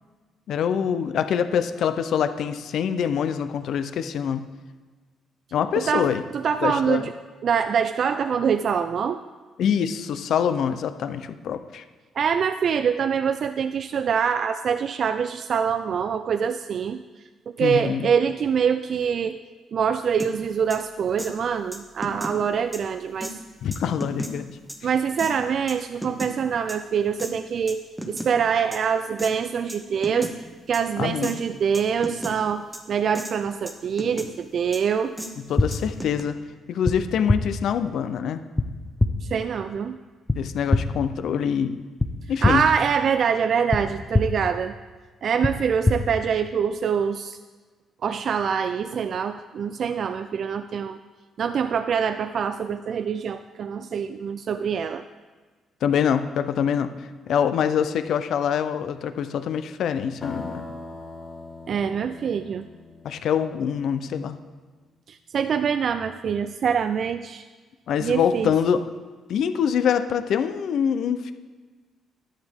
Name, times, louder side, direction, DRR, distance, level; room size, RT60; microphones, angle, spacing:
voice 1, 0.5-4.4 5.5-6.2 6.6-7.1 9.6-11.8 17.6-18.1 23.6-24.5 31.0-31.3 35.5-36.4 36.7-38.4 40.4-41.8 42.3-42.6 55.8-56.9 57.3-60.6 63.0-64.4 67.9-68.8 69.3-71.3, left 8 dB, 70° left, 11 dB, 0.6 m, -25 dB
voice 2, 5.8-7.1 7.4-9.2 12.2-17.0 17.6-19.4 19.7-23.3 24.8-30.3 30.7-35.2 39.2-40.0 42.4-44.7 45.2-47.4 48.0-51.0 51.4-55.0 61.7-62.7 65.1-67.4 68.0-68.5, right 7 dB, 55° right, 10 dB, 0.3 m, -25 dB
sound 1, 20.2-20.3 20.7-20.8 21.2-21.3 21.7-22.4 22.7-22.8 23.2-23.3 23.7-24.3 24.7-24.8 25.2-25.3 25.7-26.3 26.7-26.8 27.2-27.3 27.7-28.3 28.7-28.8 29.2-29.3 29.7-29.8 30.0-30.3 30.7-30.8 31.2-31.3 31.7-32.3 32.7-32.8 33.1-33.3 33.7-34.3 34.7-34.8 35.2-35.3 35.7-36.2, equal, 5° right, 1.2 m, -34 dB
sound 2, 35.6-35.7 36.8-36.9 37.3-37.4 38.6-38.7 39.0-39.1 40.3-40.4 40.7-40.8 42.0-42.1 42.4-42.5 43.7-43.8 44.1-44.2 45.4-45.5 45.8-46.0, left 2 dB, 20° left, 0.6 m, -20 dB
sound 3, 60.2-64.0, left 3 dB, 40° left, 1.3 m, -40 dB
11.0 x 8.1 x 3.6 m, 1.4 s
cardioid pair, 90°, 0 cm